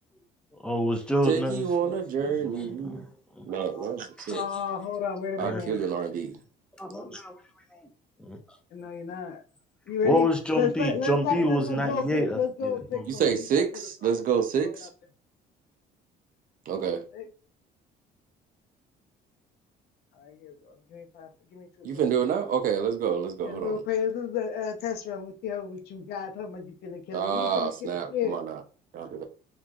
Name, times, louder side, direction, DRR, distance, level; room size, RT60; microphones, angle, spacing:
voice 1, 0.6-1.6 2.5-2.6 3.4-3.5 3.8-3.9 4.2-4.4 5.4-5.6 6.8-7.4 8.2-8.4 10.0-12.4 12.6-12.8, equal, 5° left, 0.6 m, -27 dB
voice 2, 1.3-3.0 3.5-4.4 5.4-6.4 13.1-14.9 16.7-17.0 21.8-23.8 27.1-28.6 28.9-29.2, right 7 dB, 55° right, 0.6 m, -28 dB
voice 3, 4.3-5.8 8.7-9.4 9.9-10.3 10.5-14.9 16.8-17.3 20.1-22.0 23.4-28.4, left 7 dB, 70° left, 0.7 m, -32 dB
3.0 x 2.4 x 2.3 m
cardioid pair, 110°, 17 cm